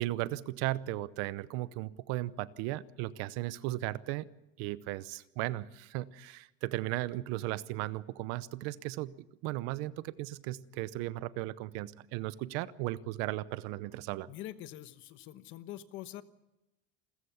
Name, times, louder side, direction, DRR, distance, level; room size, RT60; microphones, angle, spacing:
voice 1, 0.0-4.3 4.6-9.1 9.4-14.3, right 17 dB, 50° right, 17 dB, 0.8 m, -36 dB
voice 2, 14.3-16.2, left 13 dB, 40° left, 12 dB, 1.1 m, -44 dB
28.5 x 14.5 x 7.1 m, 0.96 s
cardioid pair, 175°, 30 cm